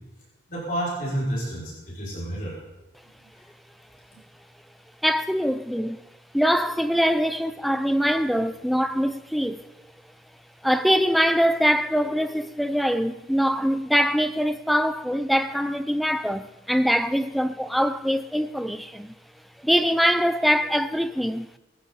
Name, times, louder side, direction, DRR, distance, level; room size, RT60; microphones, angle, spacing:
voice 1, 0.5-2.6, right 1 dB, 50° left, 5.8 m, -29 dB
voice 2, 5.0-6.0 6.3-9.6 10.6-19.1 19.6-21.5, equal, ahead, 0.5 m, -23 dB
19.0 x 15.5 x 4.1 m
head